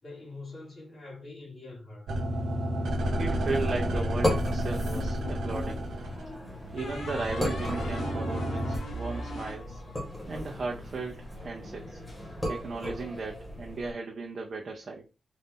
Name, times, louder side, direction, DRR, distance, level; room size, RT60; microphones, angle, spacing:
voice 1, 0.0-2.1, left 3 dB, 35° left, 2.4 m, -44 dB
sound 1, 2.1-8.8, equal, 90° right, 0.8 m, -31 dB
voice 2, 3.2-5.9 6.7-9.8 10.3-12.0 12.5-15.1, right 3 dB, 40° right, 0.6 m, -36 dB
sound 2, 3.5-13.9, left 1 dB, 10° left, 1.7 m, -36 dB
sound 3, 5.0-5.8 6.8-10.3, left 1 dB, 80° left, 1.0 m, -40 dB
4.0 x 2.6 x 3.7 m
wide cardioid pair, 150°, 0 cm